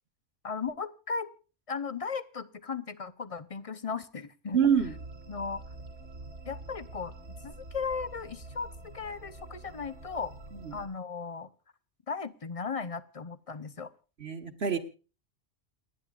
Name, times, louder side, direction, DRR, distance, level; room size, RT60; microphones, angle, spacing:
voice 1, 0.4-1.3 1.7-4.6 5.3-5.6 6.4-7.1 7.4-10.3 10.7-11.5 12.1-13.9, left 5 dB, 35° left, 14 dB, 0.8 m, -36 dB
voice 2, 4.5-4.9 10.5-10.7 14.2-14.8, right 7 dB, 60° right, 9 dB, 1.9 m, -26 dB
sound 1, 4.8-10.9, right 2 dB, 80° right, 3.4 m, -46 dB
29.5 x 9.8 x 2.4 m, 0.35 s
omnidirectional pair, 1.2 m